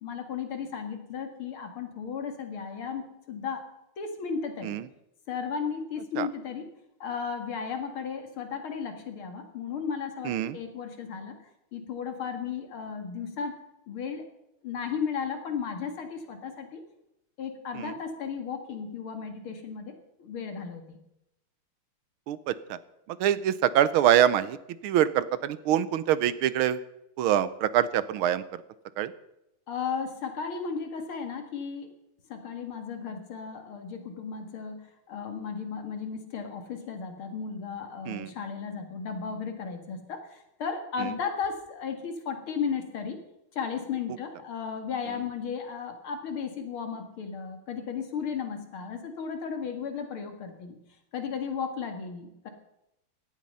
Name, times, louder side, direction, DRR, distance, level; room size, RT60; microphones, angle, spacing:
voice 1, 0.0-3.6 4.0-4.7 5.3-6.7 7.0-11.4 11.7-13.6 13.9-14.2 14.6-16.8 17.4-19.9 20.2-21.0 29.7-31.9 32.3-43.2 43.5-50.8 51.1-52.5, left 6 dB, 70° left, 5 dB, 2.8 m, -35 dB
voice 2, 10.2-10.6 17.7-17.9 22.3-22.8 23.1-24.6 24.8-26.8 27.2-28.6 29.0-29.1 38.1-38.3 41.0-41.1, right 11 dB, 80° right, 16 dB, 1.6 m, -25 dB
17.0 x 11.5 x 5.5 m, 0.86 s
omnidirectional pair, 2.4 m